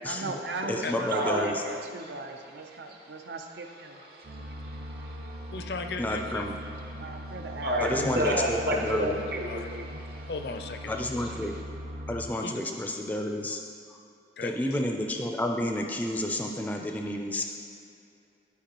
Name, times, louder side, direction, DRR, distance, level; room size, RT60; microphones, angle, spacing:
voice 1, 0.0-3.9 7.0-7.9, right 3 dB, 80° right, 4 dB, 0.6 m, -38 dB
voice 2, 0.7-1.6 6.0-6.5 7.8-9.2 10.9-11.6 12.1-13.6 13.9-14.0 14.4-17.4, left 1 dB, 10° left, 2 dB, 0.4 m, -30 dB
sound 1, 4.2-12.3, equal, 40° right, 0.5 m, -40 dB
voice 3, 4.4-5.5 7.2-7.3 7.6-10.3 11.2-11.3, equal, 55° right, -1 dB, 1.0 m, -31 dB
voice 4, 5.5-6.5 9.5-9.7 10.3-10.9 12.4-12.6 14.4-14.8, left 4 dB, 65° left, 7 dB, 0.5 m, -36 dB
11.5 x 4.7 x 3.0 m, 2.5 s
head